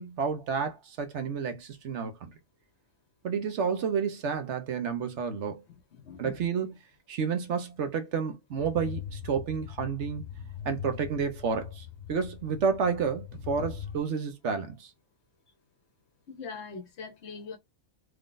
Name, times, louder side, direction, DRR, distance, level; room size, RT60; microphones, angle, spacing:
voice 1, 0.0-2.3 3.2-5.6 6.2-6.7 7.1-10.2 10.6-14.9, right 6 dB, 65° right, 1.1 m, -30 dB
voice 2, 5.9-6.4 16.3-17.6, left 5 dB, 60° left, 1.1 m, -41 dB
sound 1, 8.6-14.0, left 8 dB, 80° left, 1.0 m, -41 dB
3.7 x 3.3 x 2.5 m
omnidirectional pair, 1.3 m